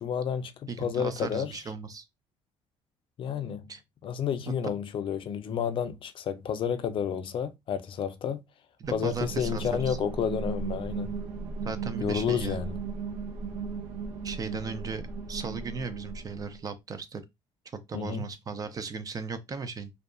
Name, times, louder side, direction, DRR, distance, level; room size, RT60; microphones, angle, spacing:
voice 1, 0.0-1.6 3.2-3.7 4.0-8.4 8.9-11.2 12.0-12.8 17.9-18.3, left 8 dB, 45° left, 0.4 m, -30 dB
voice 2, 0.7-2.0 3.7-3.8 8.8-10.0 11.6-12.6 14.2-15.0 15.3-17.2 17.9-19.9, right 4 dB, 30° right, 0.4 m, -36 dB
sound 1, 8.8-16.6, right 4 dB, 90° right, 0.6 m, -36 dB
2.6 x 2.3 x 2.4 m
cardioid pair, 115°, 12 cm